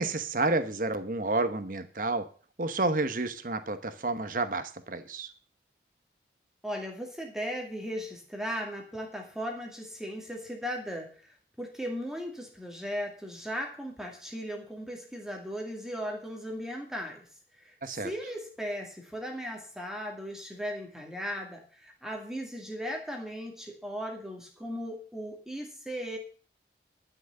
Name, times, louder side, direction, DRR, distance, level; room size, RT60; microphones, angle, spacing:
voice 1, 0.0-2.2 2.6-5.3 17.8-18.1, right 2 dB, 50° right, 10 dB, 1.0 m, -30 dB
voice 2, 6.6-17.3 17.6-17.7 18.0-26.2, equal, 5° right, 1 dB, 2.2 m, -37 dB
11.5 x 6.3 x 7.8 m, 0.40 s
head